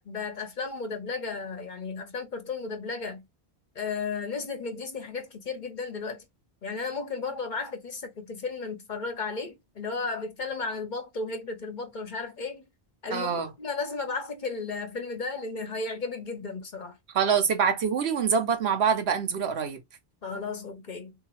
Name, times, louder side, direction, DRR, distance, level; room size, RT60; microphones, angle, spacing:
voice 1, 0.0-3.2 3.7-6.3 6.6-12.6 13.0-17.0 20.2-21.1, left 4 dB, 50° left, 1.0 m, -34 dB
voice 2, 13.1-13.5 17.1-19.8, right 6 dB, 90° right, 1.1 m, -25 dB
3.8 x 2.7 x 3.0 m
omnidirectional pair, 1.1 m